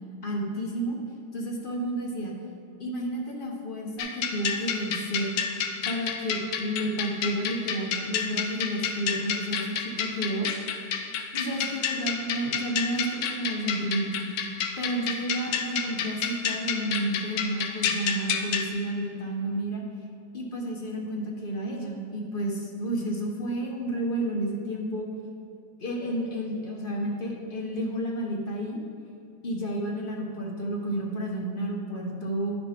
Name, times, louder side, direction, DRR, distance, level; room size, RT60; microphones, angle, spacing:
voice 1, 0.2-1.0 1.3-2.3 2.8-5.3 5.8-10.5 11.3-14.5 14.8-19.8 20.3-25.1 25.8-28.8 29.4-32.6, right 1 dB, 45° left, -1 dB, 0.8 m, -31 dB
sound 1, 4.0-18.7, left 7 dB, 85° left, 1.2 m, -30 dB
10.5 x 5.4 x 2.9 m, 2.6 s
omnidirectional pair, 1.8 m